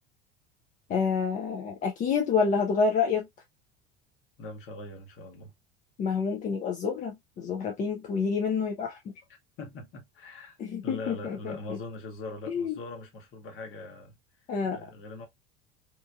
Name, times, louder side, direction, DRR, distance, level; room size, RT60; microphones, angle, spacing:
voice 1, 0.9-3.3 6.0-9.1 10.6-11.8 12.5-12.7 14.5-14.8, left 5 dB, 25° left, 0.5 m, -28 dB
voice 2, 4.4-5.5 9.6-10.6 10.8-14.2 14.6-15.3, left 2 dB, 40° left, 1.0 m, -41 dB
3.0 x 2.2 x 2.3 m
figure-of-eight pair, 70°, 31 cm